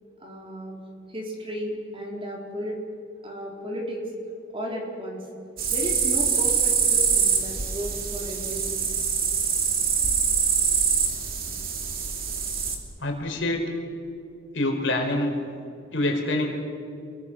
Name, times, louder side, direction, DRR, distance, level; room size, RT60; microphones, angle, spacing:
voice 1, 0.2-0.8 1.1-2.8 3.2-4.0 4.5-5.2 5.7-8.8, equal, 25° right, 0 dB, 4.3 m, -34 dB
sound 1, 5.6-12.8, right 6 dB, 45° right, 2.9 m, -24 dB
voice 2, 13.0-13.6 14.5-15.3 15.9-16.5, left 1 dB, 65° left, 2 dB, 4.6 m, -25 dB
29.0 x 23.0 x 6.3 m, 2.5 s
head